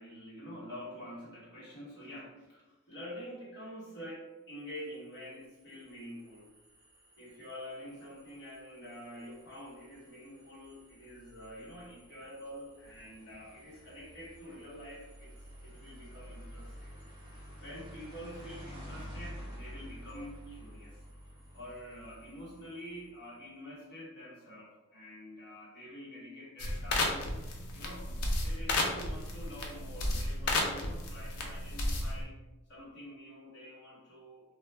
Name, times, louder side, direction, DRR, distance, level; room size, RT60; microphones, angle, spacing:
voice 1, 0.0-6.5 7.2-15.3 15.6-17.0 17.6-21.0 21.5-27.3 27.7-28.1 28.4-32.4 32.7-34.5, equal, 55° left, -7 dB, 1.2 m, -47 dB
sound 1, 4.8-23.3, equal, 20° right, 0.9 m, -51 dB
sound 2, 26.6-32.2, left 2 dB, 85° left, 0.5 m, -33 dB
2.4 x 2.1 x 3.2 m, 1.1 s
head